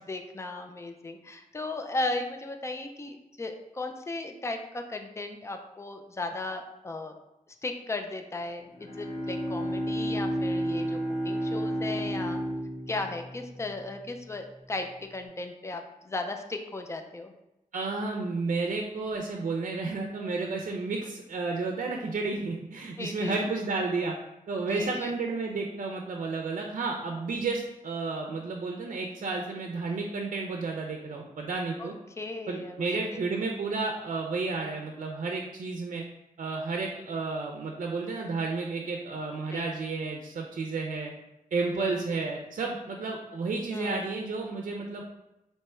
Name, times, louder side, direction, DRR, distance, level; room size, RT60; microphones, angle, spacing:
voice 1, 0.1-7.1 7.6-11.0 11.2-12.4 12.9-17.3 23.0-23.3 24.7-25.1 31.8-31.9 32.2-33.0 39.5-39.7 41.8-41.9 43.7-44.1, left 2 dB, 20° left, 5 dB, 0.4 m, -36 dB
Bowed string instrument, 8.6-14.3, equal, 65° left, 1.4 m, -32 dB
voice 2, 17.7-24.1 24.5-31.9 32.5-36.0 36.4-41.1 41.5-45.0, right 3 dB, 65° right, 1 dB, 0.5 m, -32 dB
3.4 x 2.9 x 4.3 m, 0.95 s
wide cardioid pair, 115°, 14 cm